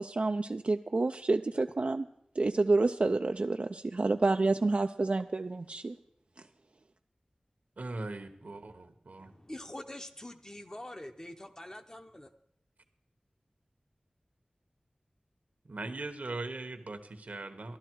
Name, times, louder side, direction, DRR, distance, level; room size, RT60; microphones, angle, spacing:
voice 1, 0.0-2.1 2.4-5.9, right 3 dB, 55° right, 6 dB, 0.4 m, -28 dB
voice 2, 7.8-9.3 15.6-17.8, right 2 dB, 75° right, 8 dB, 1.1 m, -40 dB
voice 3, 9.2-12.3, left 1 dB, 25° left, 6 dB, 0.8 m, -45 dB
13.5 x 11.5 x 4.6 m, 0.74 s
wide cardioid pair, 65°, 3 cm